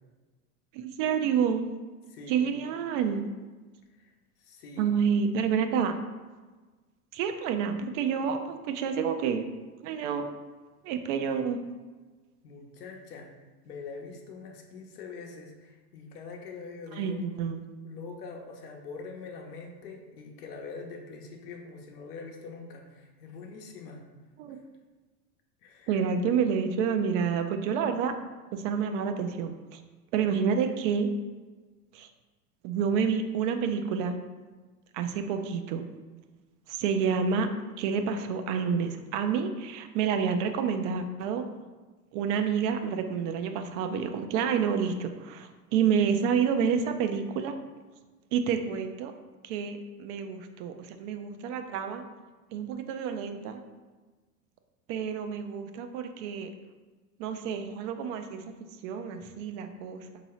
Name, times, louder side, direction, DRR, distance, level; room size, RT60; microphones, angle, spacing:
voice 1, 0.7-1.7 2.3-3.2 4.8-5.9 7.1-9.5 9.8-10.4 10.8-11.6 16.9-17.6 24.4-24.6 25.9-28.1 28.5-29.8 30.1-31.1 31.9-32.1 32.6-34.2 34.9-35.9 36.7-41.5 42.1-47.6 48.3-49.1 49.4-52.0 52.5-53.6 54.9-56.5 57.2-60.2, right 6 dB, 50° right, 7 dB, 0.5 m, -29 dB
voice 2, 2.1-2.5 4.0-4.1 4.4-4.9 12.4-13.3 13.6-17.2 17.8-24.1 25.6-26.0, left 4 dB, 75° left, 2 dB, 0.9 m, -43 dB
4.5 x 2.8 x 2.9 m, 1.3 s
hypercardioid pair, 95°, 47 cm